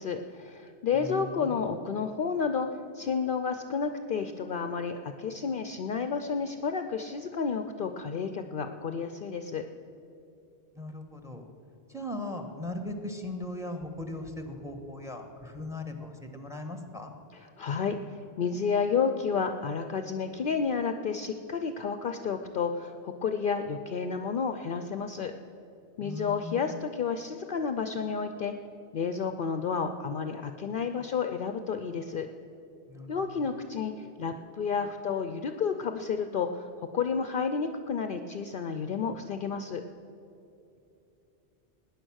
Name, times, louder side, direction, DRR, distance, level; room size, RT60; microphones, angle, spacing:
voice 1, 0.0-2.7 2.9-9.7 17.6-18.0 18.4-25.3 26.0-28.5 28.9-32.3 33.1-39.8, left 6 dB, 55° left, 8 dB, 0.7 m, -31 dB
voice 2, 0.9-1.7 10.7-11.4 11.9-17.1 26.0-26.7 32.9-33.2, left 1 dB, 5° right, 5 dB, 1.3 m, -38 dB
17.5 x 9.9 x 6.3 m, 2.8 s
omnidirectional pair, 1.1 m